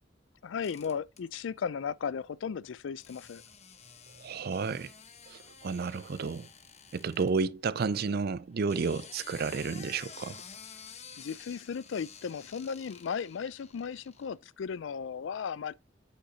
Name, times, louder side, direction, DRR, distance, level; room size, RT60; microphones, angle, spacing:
voice 1, 0.4-3.4 11.2-15.7, left 6 dB, 80° left, 0.4 m, -36 dB
sound 1, 0.6-1.2 3.0-7.3 8.5-14.3, left 7 dB, 35° left, 1.1 m, -51 dB
voice 2, 4.2-4.9 5.3-6.5 6.9-10.4, right 4 dB, 55° right, 0.4 m, -31 dB
8.0 x 6.4 x 2.8 m
head